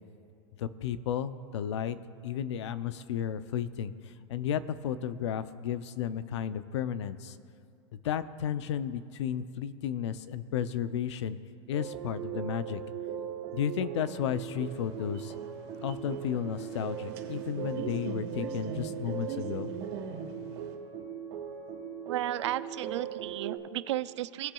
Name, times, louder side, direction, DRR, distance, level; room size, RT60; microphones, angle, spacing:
voice 1, 0.6-2.0 2.2-3.9 4.3-7.4 8.0-11.4 11.7-12.8 13.5-15.4 15.8-19.7, left 9 dB, 75° left, 14 dB, 0.5 m, -33 dB
sound 1, 11.7-23.6, right 8 dB, 45° right, 1.6 m, -39 dB
sound 2, 14.7-20.7, right 6 dB, 60° right, 1.7 m, -43 dB
voice 2, 22.1-24.5, right 14 dB, 80° right, 16 dB, 0.4 m, -34 dB
19.5 x 7.4 x 2.3 m, 2.4 s
supercardioid pair, 155°, 15 cm